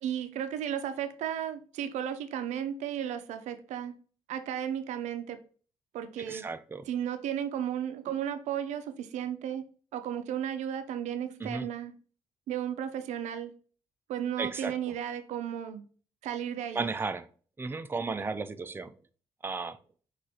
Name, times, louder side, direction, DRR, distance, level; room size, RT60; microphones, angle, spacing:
voice 1, 0.0-3.9 4.3-5.4 5.9-6.5 6.9-9.6 9.9-11.9 12.5-13.5 14.1-15.8 16.2-16.8, right 9 dB, 70° right, 0.5 m, -34 dB
voice 2, 6.3-6.8 11.4-11.7 14.4-14.7 16.7-17.3 17.6-18.9 19.4-19.8, right 4 dB, 20° right, 0.4 m, -34 dB
6.1 x 2.5 x 2.7 m
hypercardioid pair, 55°, 12 cm